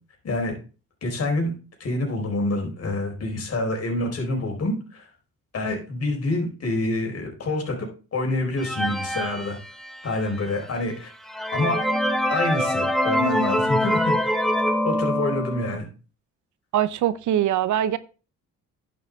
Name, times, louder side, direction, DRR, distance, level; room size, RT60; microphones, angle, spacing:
voice 1, 1.0-1.5 1.8-5.1 5.5-9.6 10.0-11.1 11.5-11.8 12.3-14.2 14.8-15.9, left 2 dB, 55° left, 4.5 m, -27 dB
sound 1, 8.6-10.2 10.8-10.9 11.2-15.8, equal, ahead, 1.2 m, -24 dB
voice 2, 16.7-18.0, right 11 dB, 75° right, 0.8 m, -22 dB
10.5 x 7.1 x 3.6 m
cardioid pair, 90°, 30 cm